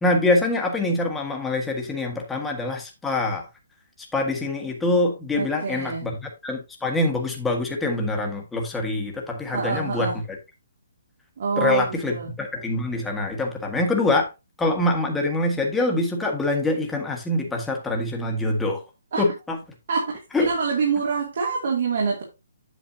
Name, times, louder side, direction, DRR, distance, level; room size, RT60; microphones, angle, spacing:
voice 1, 0.0-3.4 4.1-10.1 11.6-14.3 14.6-18.8 19.2-19.6 20.3-20.5, left 2 dB, 5° left, 1.4 m, -24 dB
voice 2, 5.4-6.1 9.5-10.2 11.4-12.3 19.1-19.2 19.9-22.2, right 5 dB, 60° right, 2.4 m, -26 dB
8.3 x 7.0 x 2.7 m
hypercardioid pair, 160°, 0 cm